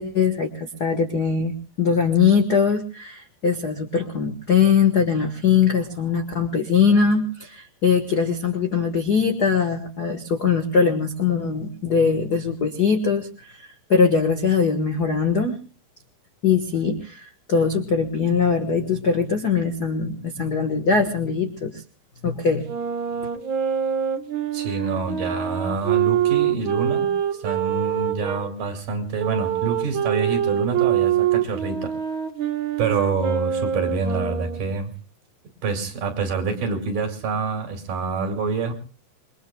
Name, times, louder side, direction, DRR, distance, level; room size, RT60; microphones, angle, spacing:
voice 1, 0.0-1.5 1.8-15.6 16.4-21.8 22.2-22.6, left 5 dB, 85° left, 5 dB, 0.8 m, -21 dB
sound 1, 22.6-28.4 29.2-34.8, right 9 dB, 85° right, 1.1 m, -24 dB
voice 2, 24.5-31.9 32.8-34.9 35.6-38.7, right 4 dB, 65° right, 4 dB, 3.8 m, -27 dB
27.5 x 22.5 x 2.3 m, 0.35 s
omnidirectional pair, 4.2 m